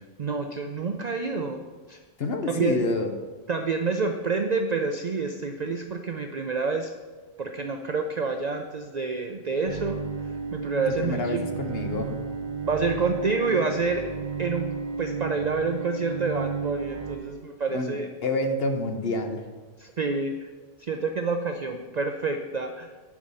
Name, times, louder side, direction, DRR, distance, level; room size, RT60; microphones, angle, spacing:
voice 1, 0.2-1.6 1.9-2.0 2.5-2.8 3.5-6.9 7.4-10.0 10.5-11.5 12.7-14.0 14.4-14.7 15.0-18.1 19.8-20.3 20.8-22.9, right 4 dB, 65° right, 5 dB, 0.4 m, -28 dB
voice 2, 2.2-3.1 10.9-12.2 17.7-19.4, left 2 dB, 55° left, 6 dB, 0.9 m, -28 dB
Bowed string instrument, 9.7-17.2, right 6 dB, 90° right, 1.6 m, -33 dB
10.5 x 4.9 x 5.5 m, 1.3 s
omnidirectional pair, 1.4 m